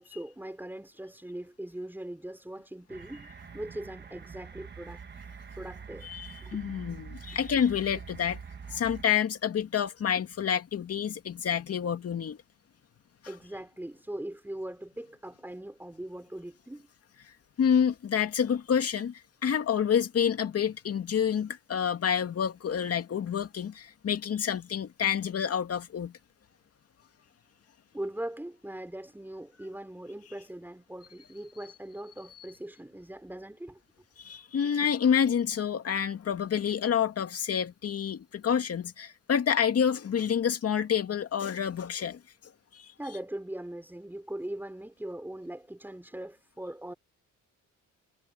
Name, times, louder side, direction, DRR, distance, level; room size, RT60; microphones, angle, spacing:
voice 1, 0.0-5.0 5.6-6.1 6.4-6.6 13.3-16.9 27.9-33.8 43.0-46.9, right 1 dB, 5° right, 3.8 m, -40 dB
sound 1, 2.9-9.0, right 6 dB, 35° right, 1.4 m, -45 dB
voice 2, 6.0-8.4 8.7-12.4 17.6-26.1 34.2-42.2 42.7-42.9, left 8 dB, 50° left, 2.3 m, -28 dB
cardioid pair, 90°, 30 cm